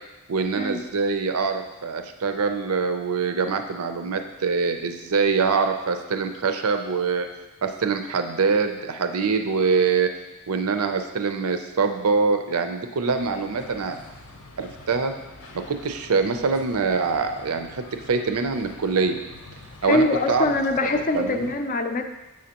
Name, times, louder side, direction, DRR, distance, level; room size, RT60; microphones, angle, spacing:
voice 1, 0.3-7.3 7.6-10.1 10.5-14.0 14.6-15.1 15.5-19.2 19.8-20.5 20.8-21.5, right 4 dB, 80° right, 7 dB, 0.5 m, -24 dB
sound 1, 13.0-21.6, left 2 dB, 85° left, 0.8 m, -46 dB
voice 2, 19.9-22.1, left 2 dB, 35° left, 6 dB, 0.4 m, -23 dB
7.4 x 6.3 x 2.9 m, 1.0 s
head